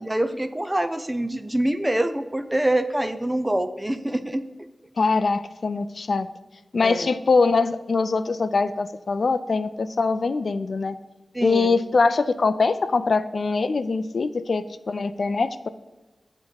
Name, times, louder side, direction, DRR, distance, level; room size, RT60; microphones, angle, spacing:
voice 1, 0.0-4.4 6.8-7.1 11.3-11.8, right 1 dB, 15° right, 9 dB, 0.4 m, -25 dB
voice 2, 5.0-6.3 6.7-10.9 11.4-15.7, left 4 dB, 65° left, 12 dB, 0.3 m, -23 dB
7.8 x 3.0 x 5.1 m, 1.2 s
wide cardioid pair, 90°, 0 cm